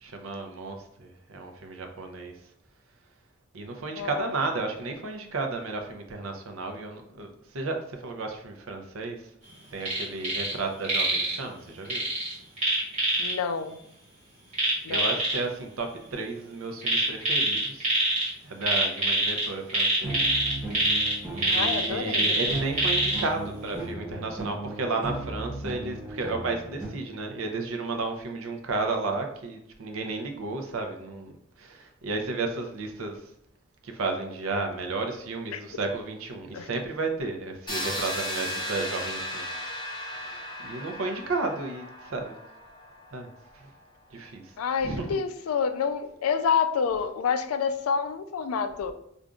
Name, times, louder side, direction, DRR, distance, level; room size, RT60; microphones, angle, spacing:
voice 1, 0.0-2.3 3.5-9.3 9.7-12.0 14.9-17.9 18.4-20.2 20.7-20.8 21.3-33.2 33.8-39.5 40.1-42.3 43.1-43.3 44.1-44.5 44.8-45.2, right 3 dB, 70° right, 4 dB, 0.6 m, -33 dB
voice 2, 4.0-4.4 13.2-13.8 14.8-15.2 21.5-22.4 35.5-35.6 36.5-36.7 44.6-48.9, left 6 dB, 80° left, 10 dB, 0.4 m, -28 dB
sound 1, 9.8-10.5 10.8-11.4 11.9-13.3 14.5-15.4 16.8-18.3 18.6-23.2 23.7-23.8, right 1 dB, 35° right, 1.4 m, -25 dB
sound 2, 20.0-26.9, right 1 dB, 10° right, 0.7 m, -37 dB
sound 3, 37.7-43.5, equal, 20° left, 1.1 m, -36 dB
4.9 x 2.5 x 2.3 m, 0.72 s
head